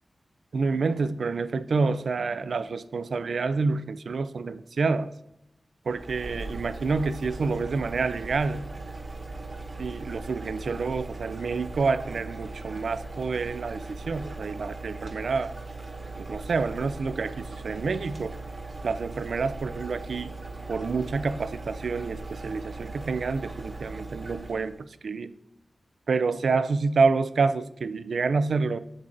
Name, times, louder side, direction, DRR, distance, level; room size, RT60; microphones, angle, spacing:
voice 1, 0.5-5.1 5.9-8.6 9.8-15.5 16.2-18.4 18.8-20.3 20.7-25.3 26.1-28.8, right 4 dB, 90° right, 13 dB, 0.3 m, -28 dB
sound 1, 5.9-24.8, right 3 dB, 40° right, 1.1 m, -39 dB
7.8 x 7.3 x 2.5 m, 0.84 s
wide cardioid pair, 85°, 0 cm